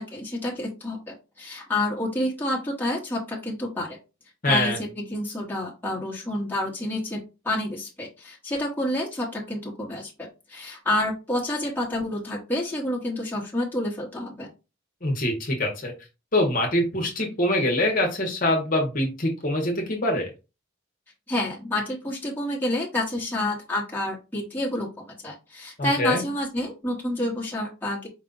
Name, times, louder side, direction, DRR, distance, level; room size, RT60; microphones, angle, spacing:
voice 1, 0.0-4.0 4.5-14.5 21.3-28.1, left 1 dB, 10° left, -4 dB, 1.1 m, -29 dB
voice 2, 4.4-4.8 15.0-15.9 16.3-20.3 25.8-26.2, left 1 dB, 40° left, 1 dB, 1.0 m, -24 dB
4.9 x 2.4 x 3.9 m, 0.29 s
head